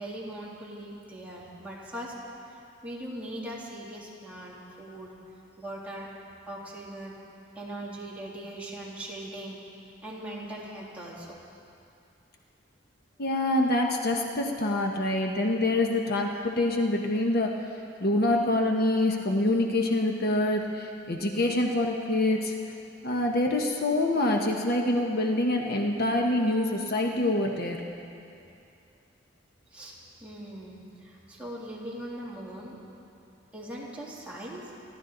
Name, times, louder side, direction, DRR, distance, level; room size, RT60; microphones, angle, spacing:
voice 1, 0.0-2.1 2.8-5.1 5.6-6.1 6.5-7.2 7.5-9.6 10.0-11.4 29.7-32.8 33.5-34.6, right 1 dB, 5° right, -6 dB, 2.8 m, -40 dB
voice 2, 13.2-17.5 18.0-22.5 23.0-27.8, left 1 dB, 55° left, 1 dB, 1.1 m, -26 dB
27.0 x 12.0 x 3.9 m, 2.6 s
head